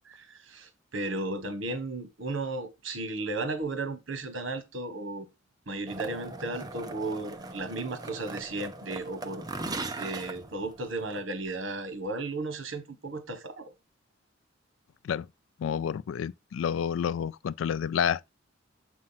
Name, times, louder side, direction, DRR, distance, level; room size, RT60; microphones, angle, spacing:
voice 1, 0.1-5.3 5.7-9.5 10.0-13.7, right 2 dB, 75° right, 1.3 m, -35 dB
sound 1, 5.9-11.2, right 2 dB, 20° right, 0.7 m, -39 dB
voice 2, 15.6-18.3, left 8 dB, 80° left, 0.3 m, -29 dB
7.5 x 2.8 x 5.7 m
head